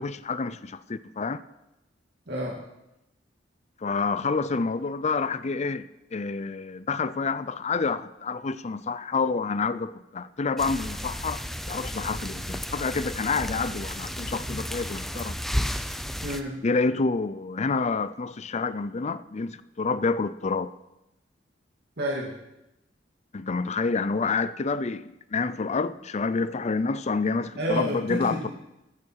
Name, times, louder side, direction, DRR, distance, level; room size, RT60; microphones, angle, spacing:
voice 1, 0.0-1.4 3.8-11.4 11.7-15.4 16.6-20.7 23.3-28.5, left 4 dB, 35° left, 0.5 m, -28 dB
voice 2, 2.3-2.6 16.2-16.6 22.0-22.3 27.6-28.5, equal, 60° right, 2.5 m, -29 dB
sound 1, 10.6-16.4, equal, ahead, 0.7 m, -33 dB
15.0 x 13.5 x 4.7 m
head